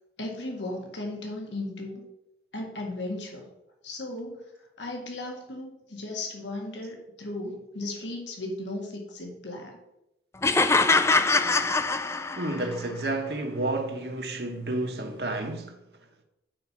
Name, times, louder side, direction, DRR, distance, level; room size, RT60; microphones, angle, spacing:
voice 1, 0.2-2.0 2.5-3.5 3.8-4.4 4.8-9.8, left 2 dB, 85° left, 1.9 m, -36 dB
sound 1, 10.4-12.7, left 3 dB, 15° left, 0.3 m, -23 dB
voice 2, 12.4-15.8, right 2 dB, 60° right, 1.3 m, -30 dB
9.0 x 4.7 x 6.0 m
head